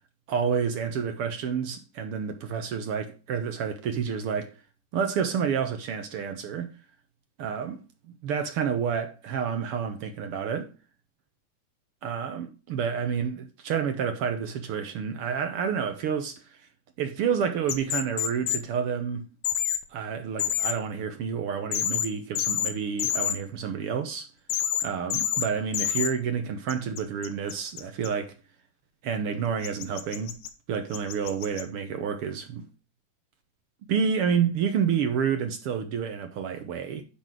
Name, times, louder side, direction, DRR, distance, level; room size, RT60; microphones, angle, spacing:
voice 1, 0.3-4.5 4.9-6.7 7.4-7.8 8.2-10.7 12.0-16.6 17.0-19.3 19.9-24.3 24.8-28.3 29.0-30.4 30.7-32.7 33.9-37.0, right 7 dB, 70° right, 1.4 m, -29 dB
sound 1, 17.7-18.6 19.4-19.8 20.4-20.7 21.7-22.1 22.4-22.7 23.0-23.3 24.5-24.9 25.1-25.5 25.7-26.1 26.7-28.1 29.6-30.5 30.9-31.6, left 10 dB, 70° left, 2.1 m, -27 dB
10.5 x 4.0 x 6.2 m
omnidirectional pair, 3.6 m